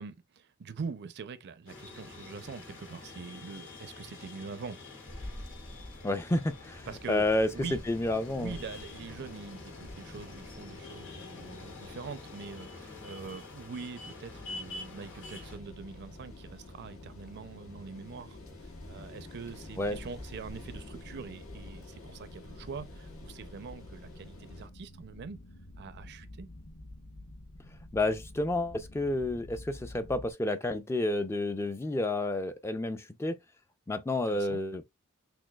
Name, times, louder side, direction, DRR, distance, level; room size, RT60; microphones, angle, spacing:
voice 1, 0.0-4.8 6.9-7.2 7.5-7.8 8.1-25.4 25.8-26.5 34.1-34.6, right 5 dB, 50° right, 0.4 m, -44 dB
sound 1, 1.7-15.6, left 3 dB, 65° left, 1.5 m, -48 dB
sound 2, 5.1-24.7, left 2 dB, 85° left, 1.6 m, -48 dB
voice 2, 6.0-8.5 19.8-20.0 27.9-33.4 33.9-34.8, left 2 dB, 10° left, 0.3 m, -30 dB
sound 3, 14.3-30.3, left 1 dB, 45° left, 0.7 m, -50 dB
6.1 x 2.2 x 2.2 m
head